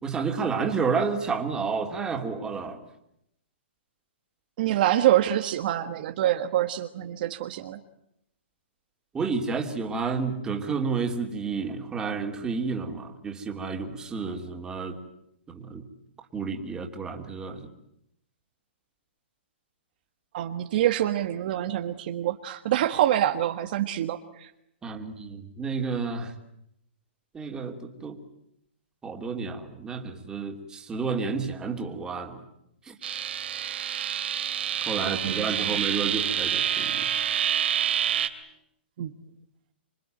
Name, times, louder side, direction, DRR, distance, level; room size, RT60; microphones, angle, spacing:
voice 1, 0.0-2.8 9.1-15.0 15.5-15.9 16.3-17.7 24.8-26.3 27.3-28.2 29.0-32.4 32.8-33.0 34.8-37.1, right 5 dB, 10° right, 3 dB, 3.0 m, -30 dB
voice 2, 4.6-7.8 20.3-24.5 35.0-35.9 39.0-39.1, right 12 dB, 50° right, 7 dB, 1.6 m, -26 dB
sound 1, 33.0-38.3, right 9 dB, 65° right, 2.8 m, -27 dB
27.0 x 23.5 x 9.3 m, 0.79 s
hypercardioid pair, 150°, 6 cm